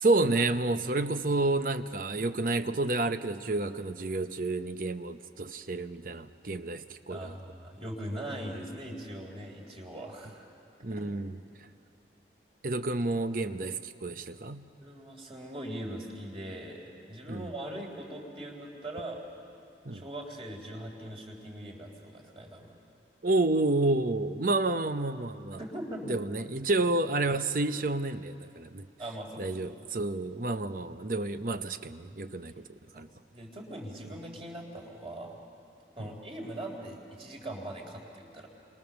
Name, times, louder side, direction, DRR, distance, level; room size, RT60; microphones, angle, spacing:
voice 1, 0.0-7.3 10.8-11.4 12.6-14.6 17.3-17.5 19.9-20.0 23.2-25.6 26.1-28.9 29.4-33.1 36.0-36.1, right 2 dB, 50° right, 10 dB, 0.8 m, -30 dB
voice 2, 7.1-10.4 10.9-11.0 14.8-19.2 19.9-22.8 25.6-26.2 29.0-29.6 32.9-33.1 33.3-35.4 36.0-38.5, right 1 dB, 30° right, 0 dB, 3.8 m, -41 dB
29.5 x 24.5 x 7.0 m, 2.7 s
head